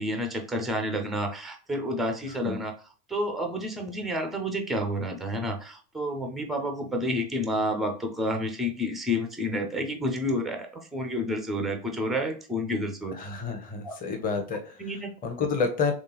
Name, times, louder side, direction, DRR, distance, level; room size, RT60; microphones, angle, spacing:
voice 1, 0.0-2.7 3.1-13.1 13.8-14.0 14.8-15.1, equal, ahead, 4 dB, 0.3 m, -30 dB
voice 2, 13.1-14.7 15.2-15.9, left 5 dB, 20° left, 4 dB, 0.8 m, -29 dB
3.6 x 3.3 x 2.8 m, 0.40 s
hypercardioid pair, 95°, 43 cm